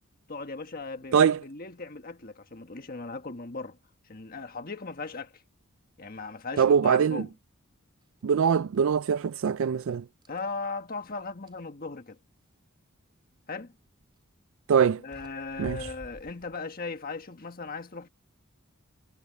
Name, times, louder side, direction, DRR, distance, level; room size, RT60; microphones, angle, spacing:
voice 1, 0.3-3.8 4.1-5.4 6.0-7.3 10.3-12.2 13.5-13.8 15.0-18.1, left 3 dB, 40° left, 1.5 m, -38 dB
voice 2, 6.6-7.3 8.2-10.0 14.7-15.0 15.6-15.9, right 7 dB, 65° right, 0.4 m, -23 dB
sound 1, 8.2-8.4 8.7-9.4 9.8-11.7 13.9-14.2 14.8-14.9 15.1-16.6, equal, 20° right, 3.6 m, -49 dB
head